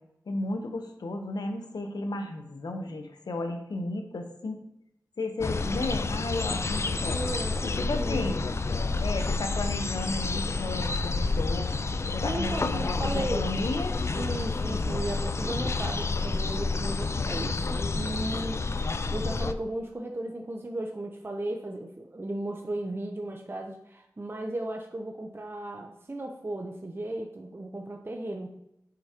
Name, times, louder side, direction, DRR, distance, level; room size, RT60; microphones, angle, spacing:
voice 1, 0.3-4.6 5.2-7.2 7.6-8.4 9.0-11.7 12.1-14.0, left 2 dB, 80° left, 5 dB, 0.8 m, -33 dB
sound 1, 5.4-19.5, left 3 dB, 40° left, 0.3 m, -29 dB
voice 2, 7.1-8.4 12.2-13.5 14.2-18.6 19.1-28.6, right 1 dB, 35° right, 2 dB, 0.6 m, -35 dB
7.6 x 4.7 x 2.9 m, 0.83 s
cardioid pair, 45°, 7 cm